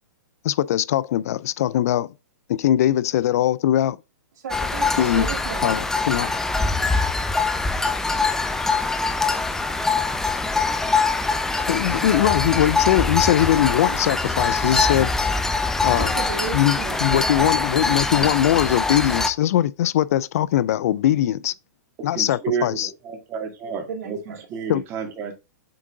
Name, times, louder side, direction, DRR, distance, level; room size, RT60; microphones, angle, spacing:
voice 1, 0.4-2.1 2.5-4.0 5.0-5.3 5.6-6.3 11.7-15.1 15.8-16.1 16.5-21.5 22.0-22.9 24.7-24.8, left 12 dB, 60° left, 0.3 m, -21 dB
voice 2, 4.4-5.8 15.9-17.7 23.9-24.5, right 5 dB, 70° right, 2.4 m, -34 dB
sound 1, 4.5-19.3, left 3 dB, 5° left, 0.5 m, -23 dB
voice 3, 22.1-25.3, right 6 dB, 25° right, 1.9 m, -30 dB
7.7 x 3.7 x 3.6 m
hypercardioid pair, 145°, 9 cm